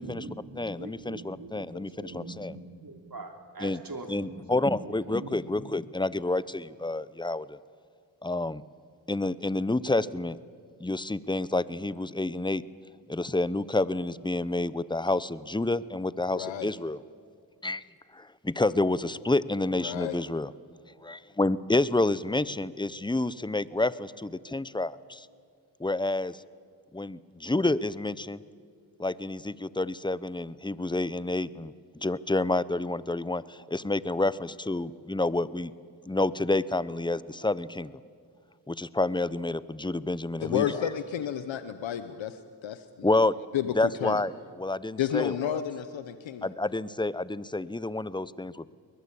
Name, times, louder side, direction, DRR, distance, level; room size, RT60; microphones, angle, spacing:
voice 1, 0.0-5.8, right 2 dB, 50° right, 4 dB, 3.7 m, -43 dB
voice 2, 0.6-2.5 3.6-3.8 4.1-7.6 8.2-8.6 9.1-10.4 10.8-12.6 13.1-17.0 17.6-17.8 18.1-20.5 21.0-25.3 25.8-26.4 26.9-28.4 29.0-31.7 32.0-35.7 36.1-37.9 38.7-40.9 43.0-43.3 43.7-44.3 44.6-45.6 46.4-48.7, left 2 dB, 10° left, 18 dB, 0.9 m, -29 dB
voice 3, 16.3-16.7 19.8-20.2 40.4-43.2 43.5-43.7 44.0-44.2 45.0-46.5, left 10 dB, 90° left, 11 dB, 0.9 m, -31 dB
22.0 x 20.5 x 8.5 m, 2.1 s
cardioid pair, 40°, 44 cm